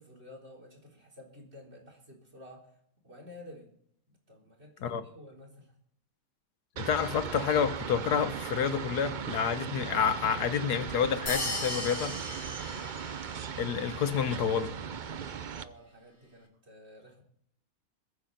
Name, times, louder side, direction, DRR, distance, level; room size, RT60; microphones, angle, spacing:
voice 1, 0.0-2.7 3.0-3.7 4.1-5.8 12.6-13.0 15.5-17.2, left 1 dB, 40° right, 4.0 m, -51 dB
voice 2, 6.8-12.2 13.6-14.7, left 7 dB, 85° left, 1.5 m, -29 dB
sound 1, 6.8-15.6, right 7 dB, 60° right, 0.5 m, -38 dB
sound 2, 11.3-13.5, left 1 dB, 20° left, 2.6 m, -36 dB
22.0 x 10.0 x 4.1 m
omnidirectional pair, 1.7 m